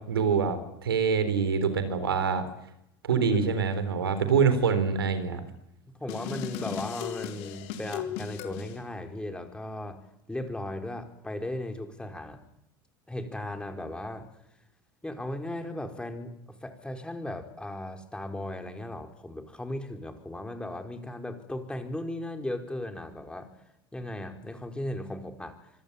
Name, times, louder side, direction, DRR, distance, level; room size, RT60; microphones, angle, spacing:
voice 1, 0.1-2.4 3.0-5.4, right 6 dB, 85° right, 11 dB, 3.7 m, -25 dB
voice 2, 3.1-3.4 4.0-4.1 5.9-10.0 10.3-12.5 13.1-14.3 15.0-16.3 16.6-23.5 23.9-25.7, left 1 dB, 10° left, 6 dB, 4.9 m, -37 dB
sound 1, 6.1-8.7, left 8 dB, 60° left, 3.6 m, -36 dB
26.0 x 21.5 x 8.6 m, 0.82 s
hypercardioid pair, 80°, 12 cm